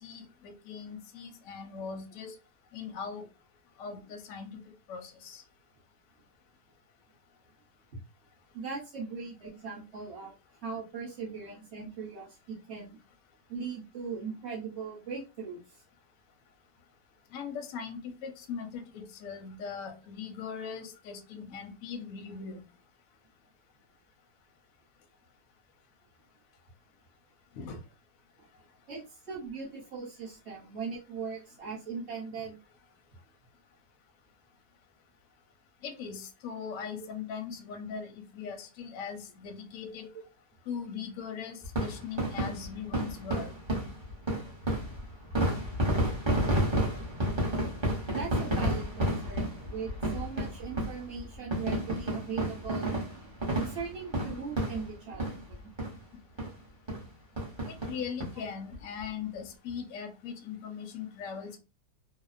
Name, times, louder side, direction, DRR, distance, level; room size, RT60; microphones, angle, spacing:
voice 1, 0.0-2.4 2.7-3.2 3.8-4.6 4.9-5.4 17.3-22.6 27.6-27.8 35.8-40.1 40.7-43.5 57.7-61.6, left 6 dB, 70° left, 0.8 m, -40 dB
voice 2, 8.5-10.3 10.6-13.0 13.5-15.8 28.9-32.6 40.1-40.2 48.1-53.0 53.6-55.6, right 5 dB, 45° right, 1.0 m, -39 dB
sound 1, 41.6-55.5 55.8-56.0 56.4-56.5 56.9-57.0 57.4-58.3 58.7-58.8 59.0-59.1, right 1 dB, 30° right, 0.5 m, -31 dB
2.8 x 2.0 x 2.4 m
omnidirectional pair, 1.8 m